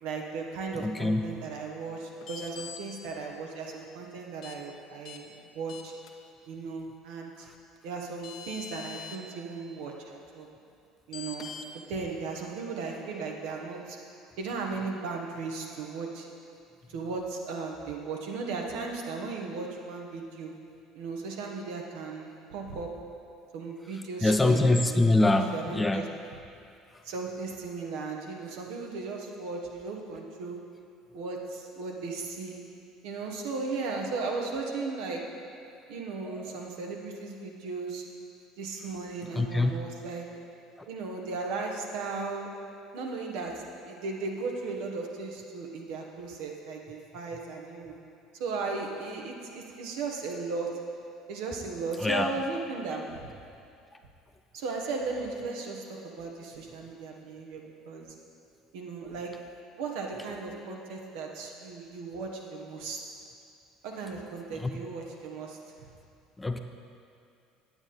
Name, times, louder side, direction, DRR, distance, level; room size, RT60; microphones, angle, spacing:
voice 1, 0.0-5.9 6.5-7.5 7.8-10.5 11.1-11.5 11.9-14.0 14.4-16.3 16.9-20.5 20.9-22.9 23.5-24.8 25.3-26.1 27.0-30.6 31.1-32.6 33.0-35.2 35.9-38.0 38.6-40.3 40.9-42.5 42.9-47.9 48.4-50.7 51.3-53.3 54.5-58.1 58.7-59.3 59.8-63.0 63.8-65.6, right 4 dB, 70° right, 1 dB, 1.2 m, -36 dB
voice 2, 0.8-1.2 24.2-26.0 36.3-36.4 39.3-39.7 52.0-52.3 66.4-66.6, left 2 dB, 15° left, 6 dB, 0.6 m, -24 dB
sound 1, 2.2-2.8 4.4-4.6 5.0-5.2 5.7-6.1 7.8-7.9 8.2-9.2 11.1-11.7, left 7 dB, 55° left, 0.8 m, -42 dB
8.8 x 8.7 x 4.1 m, 2.5 s
hypercardioid pair, 65°, 0 cm